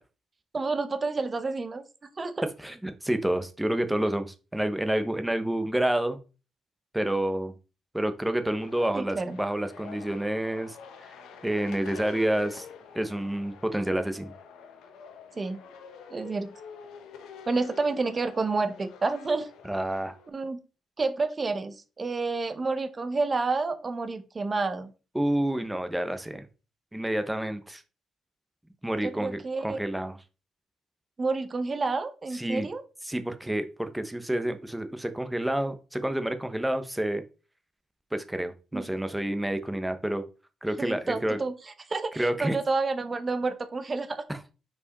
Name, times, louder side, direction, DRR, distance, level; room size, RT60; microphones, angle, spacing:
voice 1, 0.5-1.8 2.2-2.3 8.9-9.4 15.4-15.6 16.1-16.5 17.5-19.5 20.3-20.6 21.0-24.9 29.0-29.8 31.2-32.8 38.7-38.9 40.8-41.5 41.9-44.2, right 3 dB, 30° right, 10 dB, 0.7 m, -29 dB
voice 2, 2.6-6.2 6.9-7.5 7.9-10.8 11.4-12.7 12.9-14.3 19.6-20.1 25.1-26.4 26.9-27.8 28.8-30.2 32.3-32.7 33.1-37.2 38.1-40.2 40.6-41.4 42.2-42.6 44.3-44.4, right 1 dB, 5° right, 9 dB, 0.9 m, -29 dB
sound 1, 8.5-20.3, left 6 dB, 85° left, 1.0 m, -47 dB
5.6 x 4.7 x 4.1 m, 0.32 s
cardioid pair, 90°, 0 cm